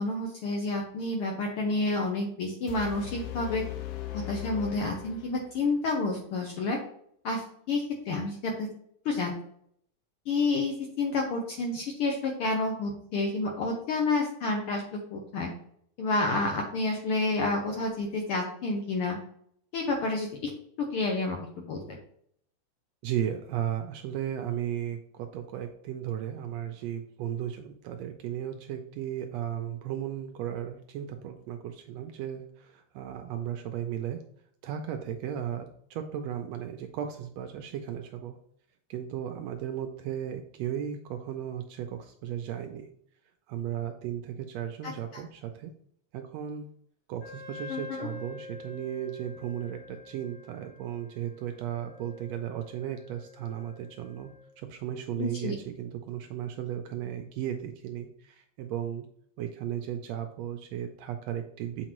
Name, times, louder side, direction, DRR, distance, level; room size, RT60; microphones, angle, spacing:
voice 1, 0.0-3.6 4.3-6.8 7.2-8.7 9.0-9.3 10.3-14.8 15.1-15.5 16.0-19.2 19.7-20.3 20.9-21.8 44.8-44.9 47.7-48.1 55.2-55.5, left 3 dB, 70° left, 1 dB, 1.4 m, -29 dB
sound 1, 2.7-5.7, left 11 dB, 90° left, 2.1 m, -38 dB
voice 2, 23.0-34.2 34.6-38.4 38.9-42.9 43.5-45.7 46.1-46.7 47.1-54.3 54.6-59.1 59.4-61.9, right 10 dB, 80° right, 6 dB, 1.6 m, -35 dB
Wind instrument woodwind instrument, 47.2-54.5, left 3 dB, 55° left, 2.3 m, -47 dB
7.4 x 4.4 x 3.0 m, 0.66 s
omnidirectional pair, 3.4 m